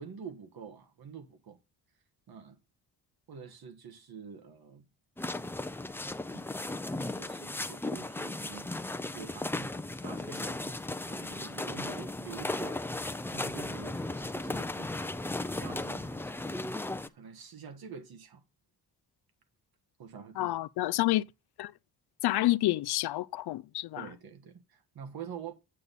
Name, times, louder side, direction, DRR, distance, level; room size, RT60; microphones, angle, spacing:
voice 1, 0.0-1.6 2.3-2.6 3.3-4.8 6.9-8.8 9.1-9.8 10.0-12.8 13.3-15.1 15.5-16.7 17.1-18.4 20.0-20.6 23.9-25.5, right 6 dB, 70° right, 1.5 m, -47 dB
sound 1, 5.2-17.1, left 2 dB, 5° left, 0.4 m, -36 dB
voice 2, 20.4-21.2 21.6-21.7 22.2-24.0, left 17 dB, 85° left, 0.5 m, -28 dB
8.4 x 6.9 x 4.0 m
cardioid pair, 115°, 38 cm